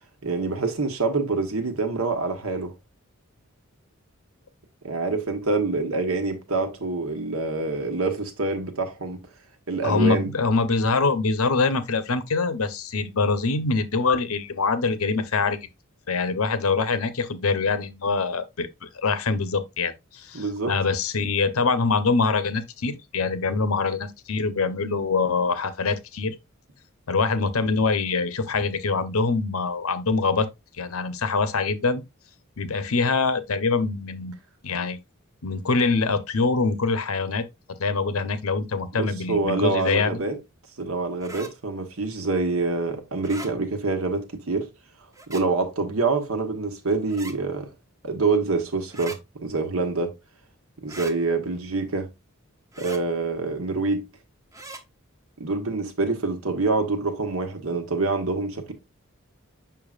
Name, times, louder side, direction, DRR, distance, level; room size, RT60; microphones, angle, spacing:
voice 1, 0.2-2.7 4.8-9.2 9.7-10.3 20.3-20.7 38.9-40.4 40.8-44.7 45.3-47.7 48.0-50.1 50.8-52.1 52.8-54.0 55.4-58.7, right 3 dB, 75° right, 1.3 m, -26 dB
voice 2, 9.8-15.6 16.1-26.4 27.1-30.5 30.8-32.0 32.6-34.3 34.6-35.0 35.4-37.5 37.8-40.2, left 4 dB, 80° left, 0.8 m, -24 dB
sound 1, 41.2-41.5 43.2-43.5 45.1-45.4 47.1-47.4 48.9-49.2 50.9-51.1 52.7-53.0 54.5-54.8, right 2 dB, 15° right, 0.7 m, -39 dB
6.9 x 5.7 x 2.4 m
head